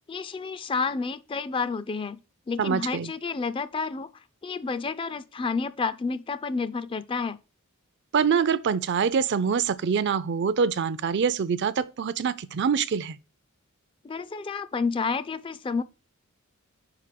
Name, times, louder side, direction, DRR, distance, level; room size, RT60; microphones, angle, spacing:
voice 1, 0.1-2.2 2.5-4.1 4.4-7.4 14.0-15.8, left 4 dB, 25° left, 0.3 m, -30 dB
voice 2, 2.6-3.1 8.1-13.2, right 6 dB, 55° right, 0.4 m, -25 dB
5.2 x 4.8 x 5.8 m
head